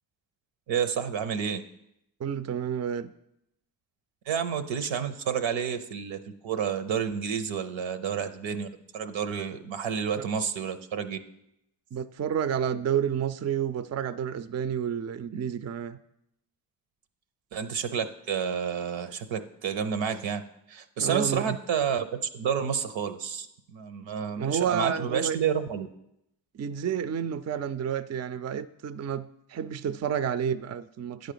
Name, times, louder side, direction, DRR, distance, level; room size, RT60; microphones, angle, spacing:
voice 1, 0.7-1.6 4.3-8.7 8.9-11.2 17.5-20.4 20.7-22.1 22.3-25.9, right 7 dB, 75° right, 10 dB, 0.8 m, -30 dB
voice 2, 2.2-3.1 10.2-10.3 11.9-16.0 21.0-21.6 24.4-25.4 26.5-31.3, right 8 dB, 35° right, 14 dB, 0.4 m, -30 dB
9.6 x 4.0 x 6.8 m, 0.81 s
supercardioid pair, 45°, 46 cm